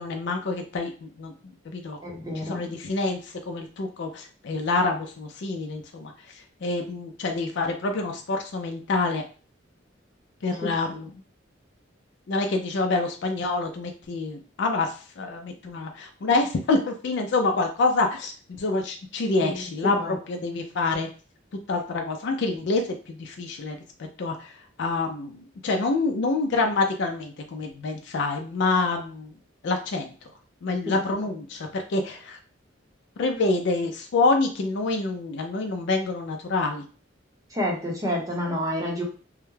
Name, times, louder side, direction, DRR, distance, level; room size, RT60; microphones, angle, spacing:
voice 1, 0.0-1.3 1.7-2.0 2.4-6.1 6.6-9.2 10.4-11.1 12.3-21.1 21.7-22.8 23.1-23.8 24.2-24.5 24.8-29.3 29.6-30.1 30.6-32.4 33.2-36.9, left 3 dB, 65° left, 3 dB, 0.4 m, -27 dB
voice 2, 2.0-2.6 10.6-10.7 19.4-20.2 30.9-31.0 37.5-39.0, left 1 dB, 20° right, -1 dB, 0.7 m, -29 dB
2.3 x 2.1 x 3.1 m, 0.37 s
head